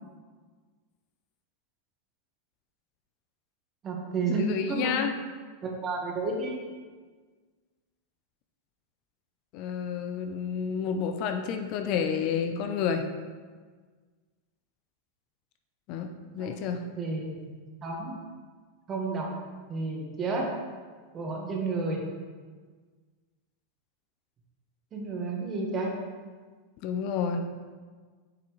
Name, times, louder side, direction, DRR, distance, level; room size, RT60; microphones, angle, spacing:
voice 1, 3.8-5.0 5.6-6.6 16.4-16.5 17.0-17.5 17.8-18.2 18.9-19.3 19.7-20.5 21.1-22.0 24.9-25.9, right 3 dB, 30° right, 0 dB, 1.5 m, -31 dB
voice 2, 4.4-5.2 9.5-13.1 15.9-16.8 26.8-27.4, left 7 dB, 50° left, 6 dB, 0.6 m, -30 dB
7.8 x 5.8 x 3.3 m, 1.5 s
supercardioid pair, 125°, 0 cm